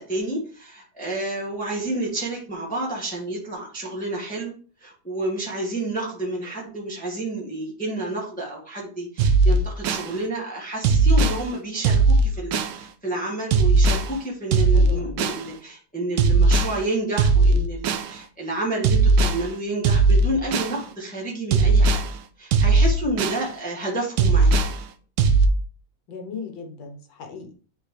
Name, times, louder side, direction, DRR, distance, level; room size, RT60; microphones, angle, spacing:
voice 1, 0.0-4.5 4.8-22.0 22.4-24.7, right 1 dB, 5° left, 1.4 m, -30 dB
sound 1, 9.2-10.1 10.8-11.4 11.8-12.8 13.5-14.1 14.5-15.4 16.2-16.8 17.2-18.1 18.8-19.4 19.8-20.8 21.5-22.1 22.5-23.4 24.2-24.8 25.2-25.5, right 3 dB, 70° right, 1.1 m, -18 dB
voice 2, 14.7-15.3 26.1-27.5, left 5 dB, 75° left, 1.7 m, -37 dB
9.1 x 3.6 x 3.2 m
omnidirectional pair, 2.1 m